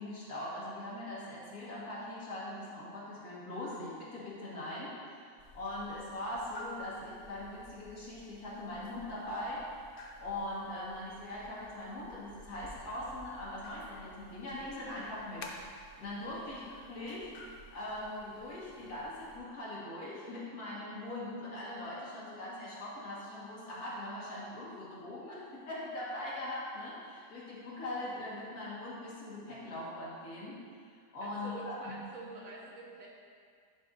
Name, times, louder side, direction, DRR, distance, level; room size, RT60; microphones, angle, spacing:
voice 1, 0.0-5.2 5.5-9.7 10.2-15.5 16.0-30.6 31.1-32.0, left 1 dB, 80° left, -7 dB, 2.2 m, -41 dB
sound 1, 5.4-19.4, left 2 dB, 55° left, 0.6 m, -53 dB
voice 2, 31.2-33.1, right 2 dB, 65° right, -4 dB, 1.6 m, -47 dB
11.0 x 5.3 x 2.6 m, 2.2 s
omnidirectional pair, 1.6 m